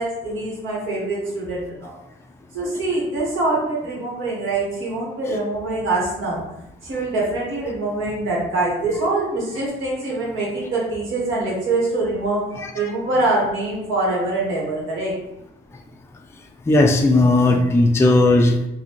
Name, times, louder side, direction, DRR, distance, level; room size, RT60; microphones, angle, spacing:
voice 1, 0.0-1.9 2.5-6.4 6.8-12.4 12.7-15.1, right 2 dB, 80° right, -4 dB, 1.4 m, -24 dB
voice 2, 16.7-18.7, left 2 dB, 15° left, 2 dB, 0.4 m, -16 dB
4.0 x 2.2 x 3.0 m, 0.90 s
cardioid pair, 90°, 20 cm